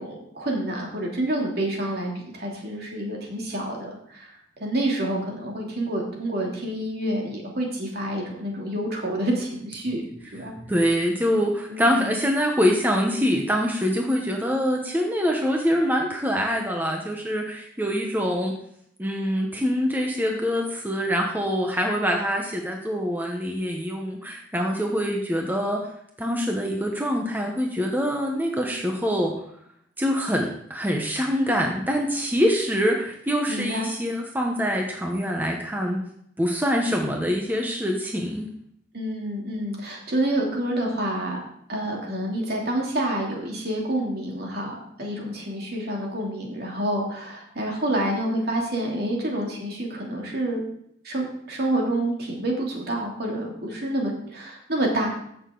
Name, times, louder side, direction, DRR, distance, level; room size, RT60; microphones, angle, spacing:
voice 1, 0.0-10.5 11.7-12.2 33.5-33.9 38.9-41.4 41.7-50.6 51.0-55.1, right 1 dB, 60° right, -1 dB, 2.8 m, -28 dB
voice 2, 10.6-18.6 19.0-25.8 26.2-29.3 30.0-36.0 36.4-38.5, equal, 10° right, 1 dB, 1.0 m, -24 dB
14.5 x 6.8 x 3.8 m, 0.71 s
head